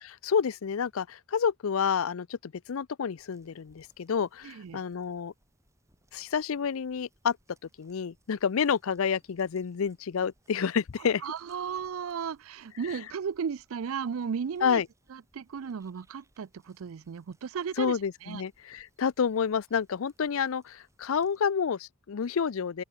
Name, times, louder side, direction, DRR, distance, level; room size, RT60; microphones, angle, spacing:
voice 1, 0.0-5.3 6.1-7.4 7.8-11.2 14.6-14.9 17.8-22.8, left 6 dB, 70° left, 0.5 m, -29 dB
sound 1, 3.1-21.5, right 1 dB, 15° right, 4.8 m, -69 dB
voice 2, 4.4-4.8 11.2-14.8 15.1-18.4, right 6 dB, 70° right, 0.4 m, -35 dB
open air
head